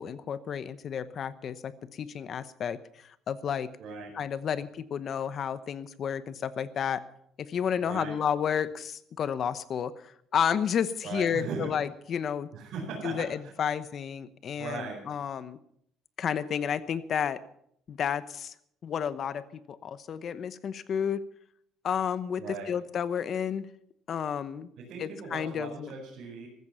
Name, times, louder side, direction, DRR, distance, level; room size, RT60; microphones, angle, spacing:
voice 1, 0.0-3.7 4.1-7.0 7.4-12.5 13.0-15.6 16.2-17.4 17.9-18.5 18.8-21.2 21.8-23.7 24.1-24.7 25.0-25.9, left 8 dB, 45° left, 14 dB, 0.9 m, -31 dB
voice 2, 3.8-4.1 7.8-8.1 11.0-11.7 12.5-13.5 14.5-15.0 22.4-22.7 24.8-26.5, right 4 dB, 60° right, -4 dB, 5.1 m, -38 dB
15.0 x 14.0 x 5.7 m, 0.69 s
cardioid pair, 130°, 0 cm